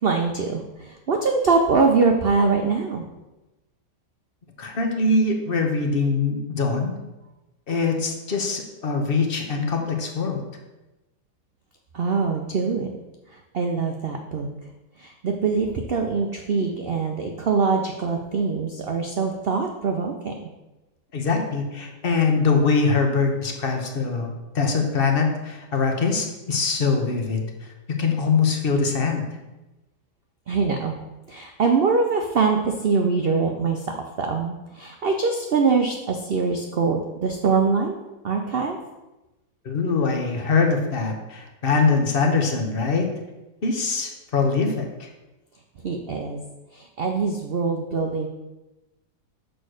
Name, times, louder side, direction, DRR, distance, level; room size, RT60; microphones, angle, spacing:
voice 1, 0.0-3.0 11.9-12.9 13.3-14.5 15.0-20.5 30.5-31.0 31.3-37.9 38.2-38.8 45.8-46.4 46.7-48.3, right 4 dB, 85° right, 3 dB, 0.5 m, -23 dB
voice 2, 4.6-6.9 7.7-10.4 21.1-27.4 28.0-29.2 39.6-43.1 43.6-45.1, left 4 dB, 40° left, 3 dB, 1.0 m, -23 dB
6.3 x 4.6 x 6.3 m, 1.0 s
omnidirectional pair, 1.9 m